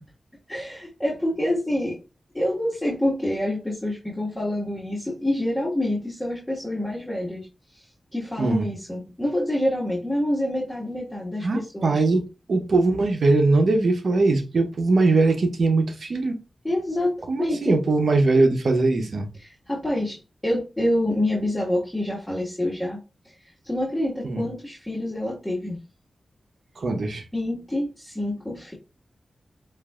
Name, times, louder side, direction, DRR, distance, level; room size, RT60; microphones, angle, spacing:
voice 1, 0.5-2.0 2.3-12.0 16.6-17.7 19.4-20.2 20.4-23.0 23.2-23.3 23.6-25.8 27.3-28.7, left 1 dB, 15° left, 1.6 m, -27 dB
voice 2, 11.4-16.4 17.3-19.3 24.2-24.4 26.8-27.2, right 3 dB, 75° right, 0.8 m, -21 dB
7.2 x 2.6 x 2.4 m
cardioid pair, 45°, 0 cm